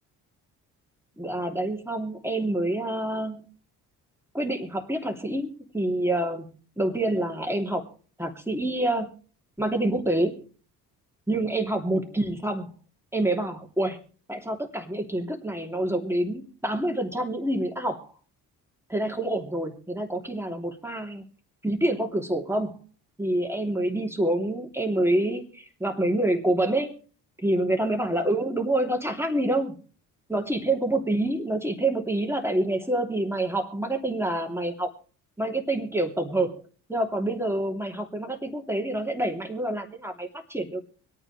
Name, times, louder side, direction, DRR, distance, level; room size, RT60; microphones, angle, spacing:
voice 1, 1.2-3.5 4.3-7.9 8.2-9.1 9.6-10.5 11.3-12.7 13.1-14.0 14.3-18.1 18.9-21.3 21.6-22.8 23.2-27.0 27.4-29.8 30.3-34.9 35.4-36.6 36.9-40.8, right 1 dB, 5° right, 3 dB, 2.9 m, -27 dB
25.0 x 8.9 x 3.3 m, 0.41 s
hypercardioid pair, 45°, 47 cm